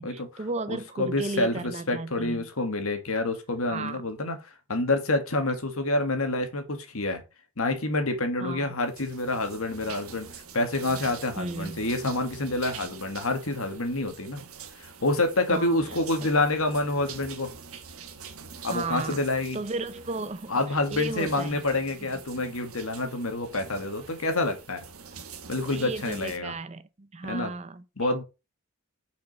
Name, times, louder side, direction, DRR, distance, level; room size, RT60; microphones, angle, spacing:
voice 1, 0.0-2.5 3.7-4.0 8.4-8.7 11.4-11.8 15.5-15.8 18.7-19.2 19.5-20.6 20.9-21.6 25.7-27.8, right 3 dB, 30° right, 0.6 m, -34 dB
voice 2, 0.7-7.2 7.6-14.4 14.8-17.5 18.6-19.6 20.5-24.8 25.5-26.5 27.3-27.5 28.0-28.2, left 2 dB, 75° left, 1.8 m, -28 dB
sound 1, 8.8-26.4, right 6 dB, 80° right, 1.4 m, -45 dB
6.2 x 5.1 x 5.3 m
head